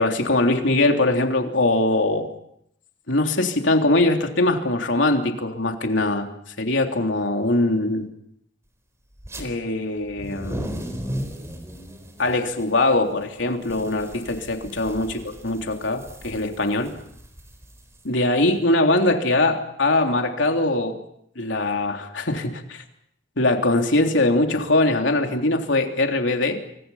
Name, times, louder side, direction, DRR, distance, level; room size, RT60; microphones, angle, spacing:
voice 1, 0.0-2.3 3.1-6.3 6.6-8.1 9.4-10.7 12.2-16.9 18.0-21.0 21.3-22.8 23.4-26.6, left 2 dB, 85° left, 3 dB, 3.3 m, -22 dB
sound 1, 9.2-9.4 10.0-18.5, equal, 15° right, 4.3 m, -36 dB
28.5 x 25.5 x 5.7 m, 0.74 s
head